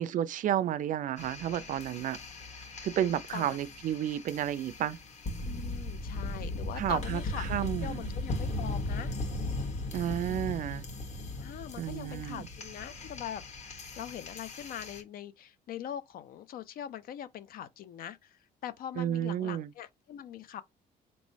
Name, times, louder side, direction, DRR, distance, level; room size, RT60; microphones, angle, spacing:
voice 1, 0.0-2.2 2.8-5.0 6.8-8.1 9.9-10.8 11.8-12.5 19.0-19.7, right 11 dB, 50° right, 0.4 m, -31 dB
sound 1, 1.2-15.0, left 2 dB, 40° left, 1.2 m, -38 dB
voice 2, 5.4-7.5 7.8-9.1 11.4-20.6, left 9 dB, 60° left, 0.4 m, -42 dB
4.3 x 3.0 x 2.7 m
cardioid pair, 110°, 17 cm